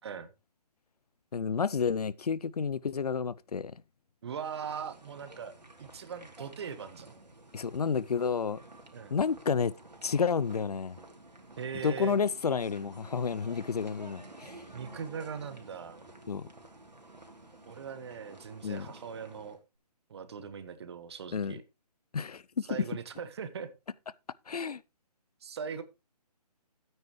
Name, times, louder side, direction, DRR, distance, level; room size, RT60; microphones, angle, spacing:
voice 1, 1.3-3.8 7.5-8.6 9.1-9.7 10.0-11.0 11.8-14.6 16.3-16.5 18.6-18.9 21.3-21.5 22.1-22.7 24.5-24.8, left 6 dB, 65° left, 0.6 m, -30 dB
voice 2, 4.2-5.5 5.8-7.1 8.9-9.1 11.6-12.1 14.7-16.0 17.7-19.6 20.1-21.6 22.7-23.7 25.4-25.8, right 6 dB, 40° right, 1.3 m, -40 dB
sound 1, 4.4-19.6, right 2 dB, 85° right, 3.1 m, -52 dB
13.0 x 9.2 x 3.1 m
figure-of-eight pair, 150°, 21 cm